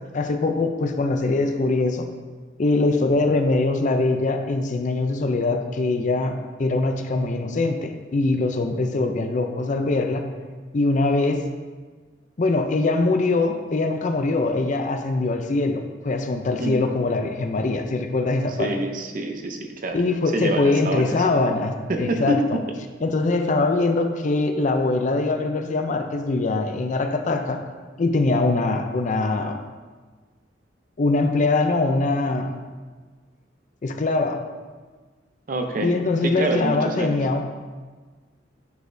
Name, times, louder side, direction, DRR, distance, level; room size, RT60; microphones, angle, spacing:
voice 1, 0.1-2.1 2.6-10.2 10.7-11.4 12.4-18.7 19.9-22.6 23.0-27.6 28.0-29.6 31.0-32.5 33.8-34.4 35.8-37.4, left 3 dB, 40° left, 6 dB, 0.4 m, -22 dB
voice 2, 18.6-20.0 20.3-21.1 21.9-22.6 35.5-35.9 36.2-37.2, right 1 dB, 45° right, 4 dB, 0.6 m, -26 dB
9.4 x 4.1 x 2.6 m, 1.4 s
head